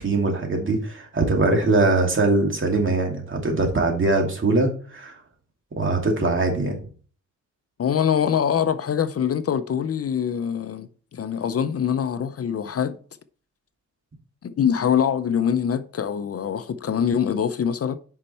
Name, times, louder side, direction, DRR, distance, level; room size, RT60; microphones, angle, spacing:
voice 1, 0.0-5.1 5.8-6.8, right 2 dB, 40° right, 2.4 m, -22 dB
voice 2, 7.8-13.0 14.4-18.0, left 8 dB, 50° left, 0.6 m, -24 dB
8.7 x 5.5 x 4.2 m
cardioid pair, 100°, 30 cm